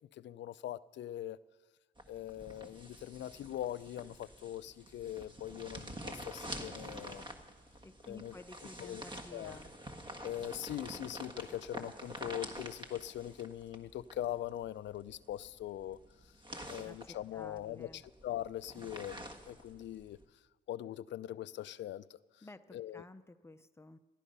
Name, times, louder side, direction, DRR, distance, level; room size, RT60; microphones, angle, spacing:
voice 1, 0.1-1.4 2.1-7.3 8.1-8.3 8.8-9.0 9.3-9.6 10.2-16.0 16.2-16.3 16.7-20.2 20.7-23.0, left 12 dB, 65° left, 0.5 m, -42 dB
sound 1, 2.0-20.2, right 1 dB, 25° right, 1.5 m, -48 dB
voice 2, 7.8-9.7 16.8-18.0 22.4-24.0, left 2 dB, 15° left, 0.7 m, -53 dB
17.5 x 12.5 x 5.5 m
cardioid pair, 90°, 20 cm